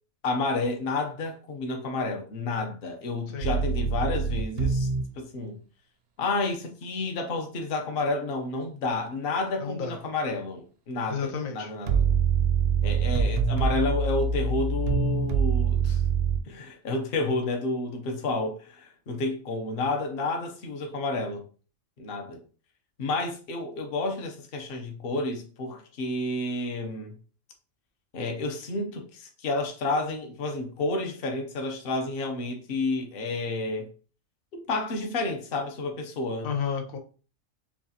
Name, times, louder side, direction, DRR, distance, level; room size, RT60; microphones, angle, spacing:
voice 1, 0.2-4.9 5.2-5.6 6.2-12.1 12.8-16.0 16.5-21.4 22.0-22.4 23.0-27.1 28.1-33.9 34.5-36.5, left 2 dB, 50° left, 0.9 m, -30 dB
sound 1, 3.4-5.1 11.9-16.4, right 5 dB, 60° right, 0.7 m, -25 dB
voice 2, 9.6-10.0 11.1-11.7 36.4-37.0, left 6 dB, 85° left, 1.2 m, -31 dB
7.0 x 2.4 x 2.8 m
omnidirectional pair, 1.4 m